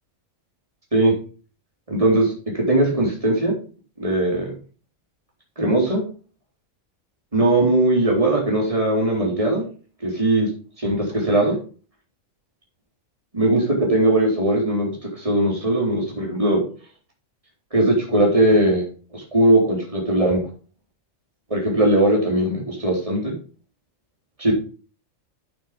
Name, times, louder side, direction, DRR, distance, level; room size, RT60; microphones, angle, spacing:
voice 1, 1.9-3.5 4.0-4.5 5.6-6.0 7.3-9.6 10.0-10.5 10.8-11.6 13.3-16.6 17.7-18.9 19.1-20.4 21.5-23.3 24.4-24.5, right 1 dB, 25° right, -2 dB, 4.0 m, -19 dB
8.5 x 7.4 x 5.3 m, 0.38 s
omnidirectional pair, 1.3 m